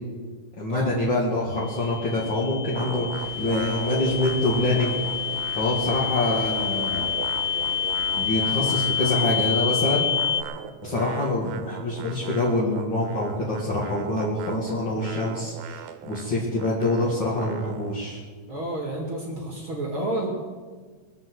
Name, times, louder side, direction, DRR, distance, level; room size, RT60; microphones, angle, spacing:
voice 1, 0.6-4.9 5.5-7.1 8.1-10.1 10.8-18.2, left 2 dB, 40° left, -5 dB, 1.9 m, -25 dB
sound 1, 1.5-10.4, left 8 dB, 80° left, 3.8 m, -28 dB
sound 2, 2.8-6.0 6.3-9.6 10.1-18.1, right 10 dB, 80° right, 3.2 m, -39 dB
sound 3, 3.2-8.8, equal, 20° left, 2.7 m, -44 dB
voice 2, 18.5-20.3, right 1 dB, 35° right, -1 dB, 2.6 m, -30 dB
22.5 x 7.7 x 7.9 m, 1.5 s
omnidirectional pair, 5.4 m